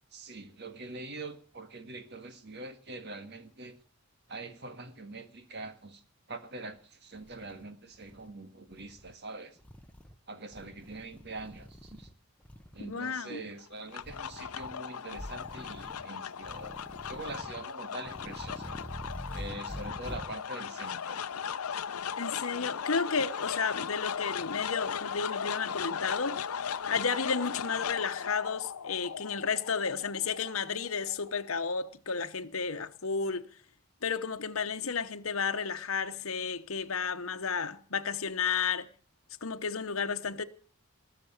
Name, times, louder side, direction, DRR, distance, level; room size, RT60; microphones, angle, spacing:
voice 1, 0.1-3.8 4.3-6.0 6.3-9.6 10.3-12.1 12.7-16.8 17.1-18.8 19.3-21.2, right 2 dB, 50° right, 1.8 m, -44 dB
sound 1, 6.7-6.8 7.2-8.3 8.7-9.1 9.6-10.2 10.5-12.1 12.4-12.9 14.0-14.8 15.1-16.1 16.4-17.6 18.0-20.4, equal, 5° left, 0.9 m, -45 dB
voice 2, 12.8-13.4 22.2-26.4 26.9-33.5 34.0-38.9 39.4-40.4, left 5 dB, 75° left, 1.1 m, -32 dB
sound 2, 13.6-31.9, left 7 dB, 90° left, 0.7 m, -37 dB
20.0 x 6.9 x 8.7 m
head